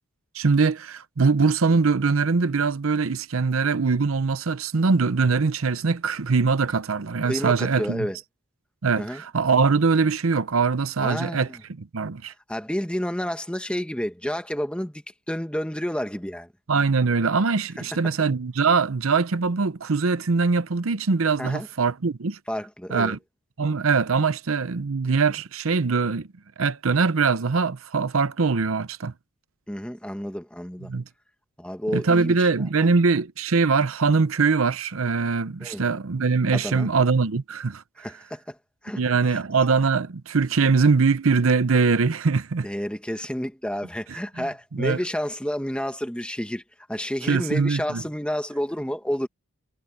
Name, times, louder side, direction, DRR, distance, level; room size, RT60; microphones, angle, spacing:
voice 1, 0.3-8.1 8.8-11.5 11.8-12.3 16.7-22.4 22.9-23.2 23.6-26.3 26.6-29.1 30.9-31.0 31.9-37.8 39.0-42.7 44.8-45.0 47.3-48.0, right 4 dB, 70° right, 0.7 m, -22 dB
voice 2, 7.2-8.2 9.0-9.2 11.0-11.6 12.5-16.5 17.8-17.9 21.4-21.7 22.5-23.2 29.7-30.9 31.6-32.5 35.6-35.9 36.5-36.9 38.0-38.6 38.8-39.0 39.3-39.4 42.6-46.6 46.9-49.3, equal, 5° left, 1.6 m, -30 dB
head